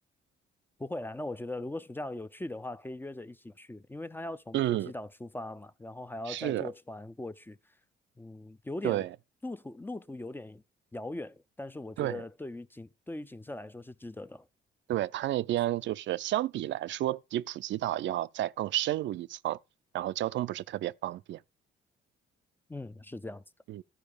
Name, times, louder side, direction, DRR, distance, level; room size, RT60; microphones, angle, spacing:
voice 1, 0.8-7.7 8.2-9.1 9.4-10.6 10.9-14.5 22.7-23.4, left 2 dB, 10° left, 0.4 m, -40 dB
voice 2, 4.5-4.9 6.3-6.7 8.8-9.1 12.0-12.2 14.9-19.6 19.9-21.4 23.7-23.8, right 14 dB, 70° right, 0.4 m, -31 dB
12.5 x 4.8 x 5.0 m
cardioid pair, 90°, 20 cm